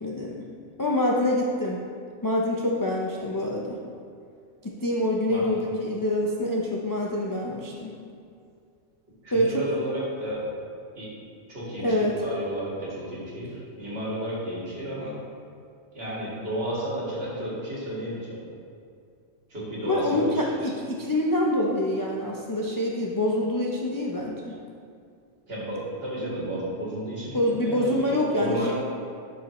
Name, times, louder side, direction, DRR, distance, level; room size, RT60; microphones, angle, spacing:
voice 1, 0.0-0.4 0.8-1.8 2.2-3.8 4.6-7.9 9.3-9.6 11.8-12.1 19.9-24.5 27.3-28.7, left 1 dB, 35° left, -2 dB, 0.3 m, -26 dB
voice 2, 5.3-5.6 9.2-10.4 11.0-11.1 11.5-15.1 15.9-18.4 19.5-20.2 20.6-20.7 25.5-28.7, right 1 dB, 50° right, -7 dB, 2.3 m, -32 dB
11.5 x 4.6 x 3.1 m, 2.3 s
omnidirectional pair, 1.3 m